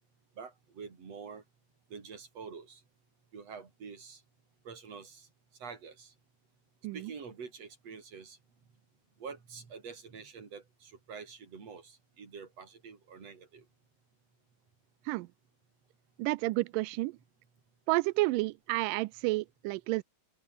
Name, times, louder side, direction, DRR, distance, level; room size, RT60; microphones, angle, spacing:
voice 1, 0.4-1.4 1.9-2.8 3.3-4.2 4.6-5.3 5.6-6.1 6.9-8.4 9.2-13.6, right 5 dB, 40° right, 4.7 m, -46 dB
voice 2, 16.2-17.2 17.9-20.0, right 21 dB, 85° right, 1.9 m, -30 dB
open air
omnidirectional pair, 4.4 m